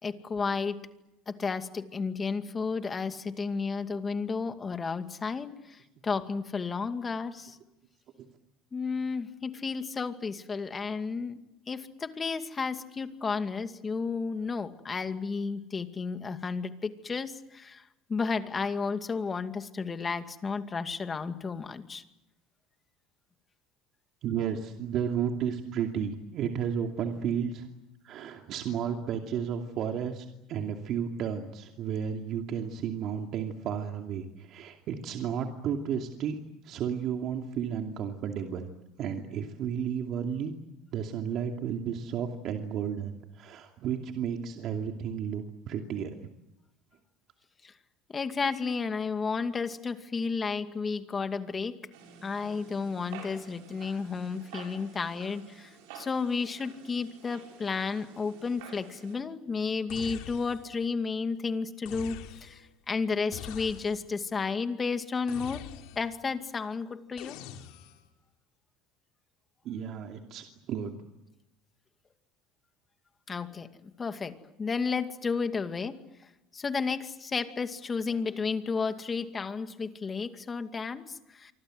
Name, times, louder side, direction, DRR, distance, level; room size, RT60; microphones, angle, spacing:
voice 1, 0.0-0.9 1.3-7.6 8.7-11.4 11.7-22.0 47.6-47.7 48.1-51.8 52.2-65.6 65.9-67.4 73.3-76.0 76.5-81.5, left 5 dB, 25° left, 8 dB, 2.3 m, -32 dB
voice 2, 24.2-27.7 28.0-38.7 39.0-40.5 40.9-46.3 69.6-71.0, right 8 dB, 55° right, 3 dB, 2.6 m, -33 dB
sound 1, 51.9-59.2, right 6 dB, 80° right, 7.4 m, -50 dB
sound 2, 59.9-60.8 61.8-62.7 63.3-64.2 65.3-66.2 67.2-68.1, left 11 dB, 75° left, 2.8 m, -44 dB
28.0 x 25.0 x 7.9 m, 0.91 s
supercardioid pair, 110°, 0 cm